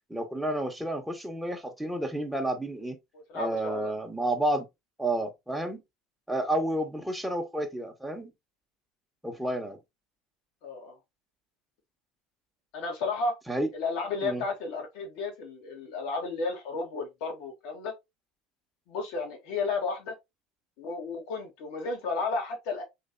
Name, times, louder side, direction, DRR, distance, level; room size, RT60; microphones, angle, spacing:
voice 1, 0.1-3.0 3.3-4.7 5.0-5.8 6.3-8.3 9.2-9.8 13.5-13.7 14.2-14.4, right 1 dB, 5° right, 1.0 m, -30 dB
voice 2, 3.3-3.9 10.6-11.0 12.7-13.4 13.7-17.9 18.9-20.1 20.8-22.8, left 3 dB, 70° left, 1.3 m, -33 dB
3.2 x 3.2 x 2.6 m
hypercardioid pair, 85°, 0 cm